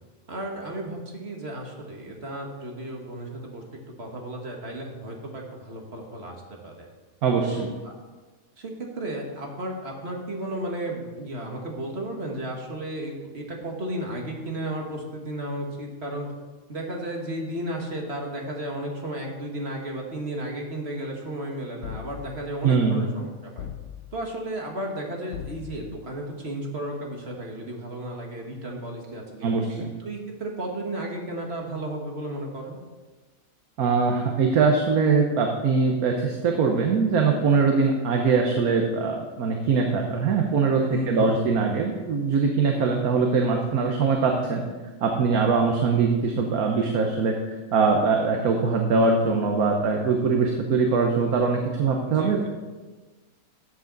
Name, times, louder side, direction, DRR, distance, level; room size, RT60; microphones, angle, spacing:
voice 1, 0.3-3.6 4.0-6.4 6.6-6.9 7.5-7.7 8.6-16.3 16.7-23.7 24.1-29.6 30.0-32.8 40.8-41.4 52.1-52.5, right 1 dB, 45° right, 0 dB, 1.8 m, -33 dB
voice 2, 7.2-7.7 22.6-23.1 29.4-29.9 33.8-44.6 45.0-47.3 47.7-52.5, right 4 dB, 90° right, 2 dB, 1.4 m, -22 dB
sound 1, 21.8-22.6 23.6-24.3 25.3-26.1, left 9 dB, 80° left, 1.1 m, -39 dB
14.0 x 7.9 x 4.0 m, 1.3 s
omnidirectional pair, 1.5 m